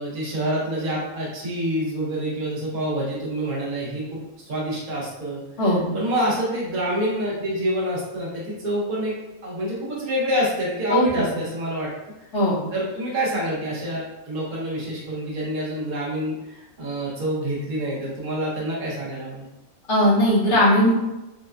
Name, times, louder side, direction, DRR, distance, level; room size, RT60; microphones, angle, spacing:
voice 1, 0.0-5.4 5.9-9.2 9.4-11.9 12.7-19.4, equal, 80° right, -6 dB, 1.5 m, -27 dB
voice 2, 10.9-11.3 12.3-12.6 19.9-20.9, left 1 dB, 60° left, -7 dB, 1.3 m, -18 dB
4.1 x 2.2 x 2.4 m, 0.99 s
omnidirectional pair, 1.5 m